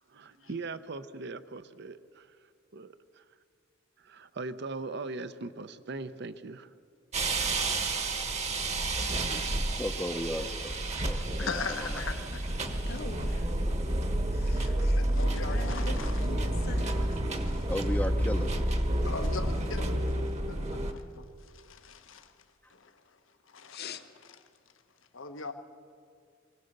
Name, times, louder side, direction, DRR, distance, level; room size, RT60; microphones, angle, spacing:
voice 1, 0.1-2.3 2.7-3.2 4.0-6.7, right 3 dB, 60° right, 13 dB, 0.7 m, -40 dB
sound 1, 7.1-20.9, right 1 dB, 35° right, 1.2 m, -30 dB
voice 2, 9.8-10.8 11.0-12.0 17.7-18.5, left 1 dB, 10° left, 3 dB, 0.6 m, -35 dB
voice 3, 11.4-12.4 13.9-14.0 14.4-16.2 17.4-17.6 19.0-21.2 21.5-22.3 22.7-22.9 23.5-23.8 25.1-25.5, left 4 dB, 85° left, 7 dB, 1.2 m, -40 dB
voice 4, 12.6-13.5 14.3-15.0 15.3-17.2 23.7-24.0, left 3 dB, 55° left, 8 dB, 1.1 m, -43 dB
24.0 x 17.0 x 6.6 m, 2.4 s
head